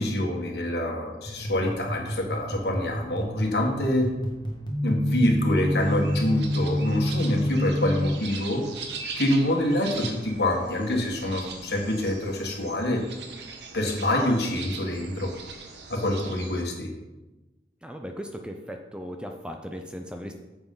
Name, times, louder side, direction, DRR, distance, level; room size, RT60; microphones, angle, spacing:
voice 1, 0.0-4.1 4.8-8.6 9.2-13.0 13.7-15.3 15.9-16.9, left 1 dB, 70° left, 1 dB, 1.6 m, -26 dB
sound 1, 1.3-8.1, left 1 dB, 25° left, 1.4 m, -28 dB
sound 2, 5.8-16.6, right 4 dB, 75° right, 1.1 m, -41 dB
voice 2, 17.8-20.3, equal, 5° right, 4 dB, 0.5 m, -37 dB
9.4 x 7.1 x 3.8 m, 1.1 s
head